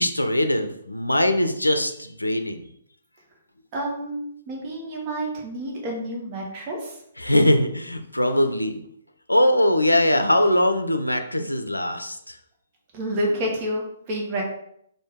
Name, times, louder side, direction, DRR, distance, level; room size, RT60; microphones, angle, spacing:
voice 1, 0.0-2.6 7.2-8.8 9.3-12.4, left 1 dB, 85° left, 7 dB, 0.4 m, -21 dB
voice 2, 3.7-4.2 4.5-7.0 12.9-14.4, right 1 dB, 35° right, -1 dB, 1.3 m, -29 dB
4.4 x 2.6 x 3.6 m, 0.72 s
figure-of-eight pair, 125°, 0 cm